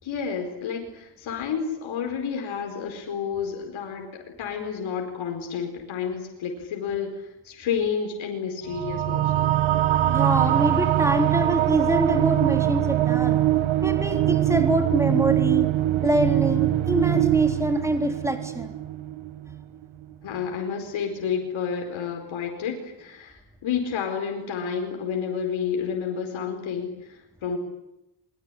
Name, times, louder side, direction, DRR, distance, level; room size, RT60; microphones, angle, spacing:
voice 1, 0.0-9.5 20.2-27.6, left 6 dB, 85° left, 3 dB, 4.8 m, -30 dB
sound 1, 8.7-19.6, right 13 dB, 85° right, 1.3 m, -23 dB
voice 2, 10.1-13.4 13.8-15.7 16.0-18.7, right 1 dB, 5° right, 5 dB, 3.8 m, -25 dB
23.5 x 23.5 x 10.0 m, 0.89 s
wide cardioid pair, 145°, 45 cm